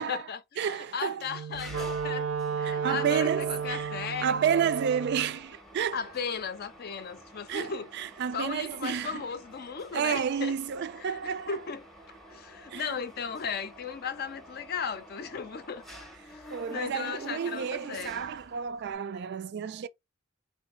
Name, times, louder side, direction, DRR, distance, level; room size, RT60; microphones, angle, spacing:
voice 1, 0.0-2.3 2.6-4.6 5.9-7.9 8.3-10.5 11.0-11.9 12.3-15.8 16.3-18.3, left 6 dB, 50° left, 0.5 m, -36 dB
voice 2, 0.6-1.2 2.7-3.9 4.2-6.0 7.5-9.3 9.9-11.6 12.7-12.9 16.5-19.9, right 7 dB, 55° right, 0.3 m, -30 dB
Wind instrument woodwind instrument, 1.3-5.4, right 6 dB, 90° right, 0.7 m, -33 dB
Mechanisms, 1.5-18.9, equal, ahead, 0.7 m, -50 dB
3.1 x 2.6 x 3.0 m
head